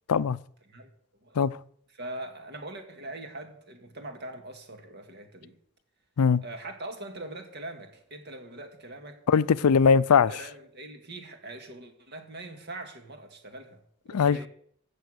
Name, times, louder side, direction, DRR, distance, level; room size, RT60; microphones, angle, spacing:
voice 1, 1.9-5.6 6.4-9.2 10.1-14.5, right 2 dB, 50° right, 1.9 m, -42 dB
voice 2, 9.3-10.3 14.1-14.4, left 6 dB, 85° left, 0.5 m, -20 dB
15.0 x 7.0 x 6.4 m
head